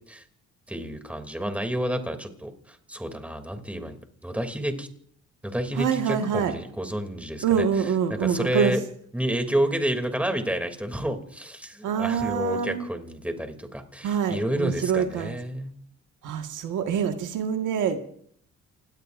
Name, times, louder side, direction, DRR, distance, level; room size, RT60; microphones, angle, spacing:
voice 1, 0.7-4.0 4.2-4.9 5.4-7.6 8.2-8.8 9.1-15.7, right 1 dB, 5° right, 6 dB, 2.9 m, -30 dB
voice 2, 5.8-6.5 7.4-8.7 11.8-12.9 14.0-15.4 16.2-18.0, right 7 dB, 85° right, 5 dB, 1.8 m, -25 dB
29.0 x 17.5 x 2.6 m, 0.63 s
cardioid pair, 90°, 30 cm